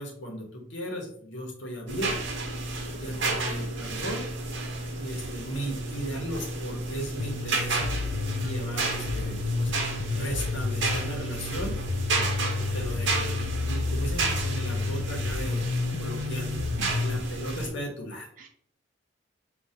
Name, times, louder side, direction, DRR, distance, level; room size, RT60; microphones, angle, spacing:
voice 1, 0.0-2.3 2.9-4.2 4.9-8.0 8.4-9.7 10.1-11.8 12.6-15.7 16.0-16.5 17.0-18.3, equal, 60° left, 0 dB, 1.1 m, -36 dB
sound 1, 1.9-17.7, right 3 dB, 65° right, 0.9 m, -32 dB
voice 2, 3.2-3.6 12.1-12.4 16.8-17.1 18.4-18.5, right 2 dB, 40° right, 1 dB, 0.4 m, -44 dB
sound 2, 7.2-17.2, left 4 dB, 45° left, 0.3 m, -31 dB
5.0 x 2.6 x 2.8 m, 0.64 s
head